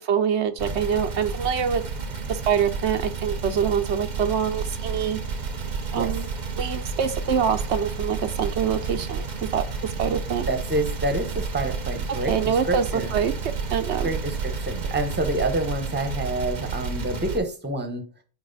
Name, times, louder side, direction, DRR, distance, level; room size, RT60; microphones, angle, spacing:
voice 1, 0.0-1.8 2.3-5.2 5.9-6.3 6.6-9.3 9.5-9.6 10.0-10.4 12.3-14.2, right 7 dB, 75° right, 8 dB, 1.0 m, -25 dB
sound 1, 0.6-17.4, right 4 dB, 45° right, 0.8 m, -31 dB
voice 2, 10.5-13.1 14.0-18.0, right 1 dB, 10° right, 7 dB, 0.9 m, -27 dB
8.9 x 3.0 x 4.0 m, 0.39 s
omnidirectional pair, 1.2 m